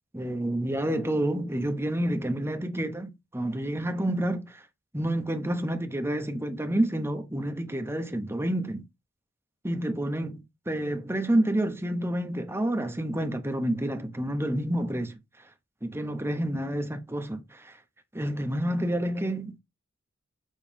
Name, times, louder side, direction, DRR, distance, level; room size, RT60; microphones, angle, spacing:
voice 1, 0.1-4.6 4.9-8.8 9.6-15.2 15.8-17.8 18.1-19.5, right 1 dB, 10° right, 1.0 m, -29 dB
7.4 x 3.3 x 5.2 m
head